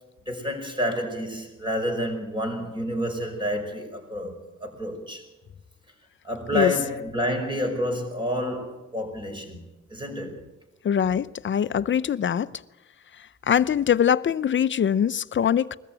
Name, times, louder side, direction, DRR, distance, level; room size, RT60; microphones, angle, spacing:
voice 1, 0.3-5.3 6.2-10.5, equal, 15° right, 5.3 m, -29 dB
voice 2, 10.8-12.5 13.5-15.8, left 8 dB, 40° left, 0.7 m, -22 dB
21.0 x 14.0 x 9.1 m
cardioid pair, 90°, 30 cm